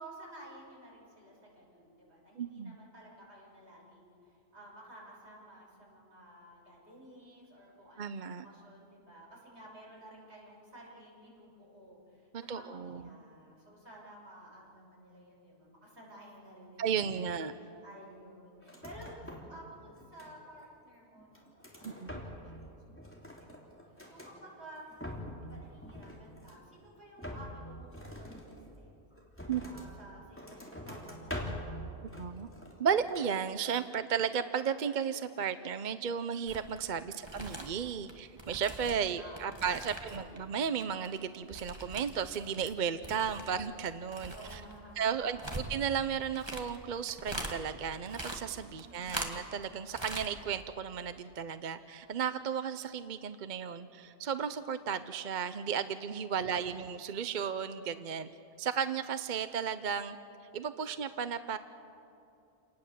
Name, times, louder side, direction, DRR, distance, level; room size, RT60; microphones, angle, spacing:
voice 1, 0.0-19.2 19.5-21.9 22.2-24.8 25.4-29.1 29.6-32.0 37.1-37.5 39.2-40.3 44.3-45.6 48.8-49.4, right 1 dB, 65° right, -4 dB, 6.6 m, -54 dB
voice 2, 2.4-2.7 8.0-8.4 12.3-13.0 16.8-17.5 21.8-22.2 29.5-29.6 32.0-32.5 32.8-44.6 45.0-58.3 58.6-60.2 60.5-61.6, right 7 dB, 50° right, 11 dB, 0.7 m, -34 dB
sound 1, 18.6-19.6 19.9-20.6 21.1-22.6 22.9-24.4 24.8-25.5 25.8-26.7 27.2-30.0 30.3-31.8 32.1-32.8 33.1-33.4, left 1 dB, 10° left, 3.1 m, -44 dB
sound 2, 36.5-36.8 37.1-40.4 40.6-42.7 43.0-47.6 47.9-49.6 49.9-50.3 50.6-50.7, right 1 dB, 20° right, 2.0 m, -42 dB
28.5 x 19.5 x 7.6 m, 2.7 s
omnidirectional pair, 1.2 m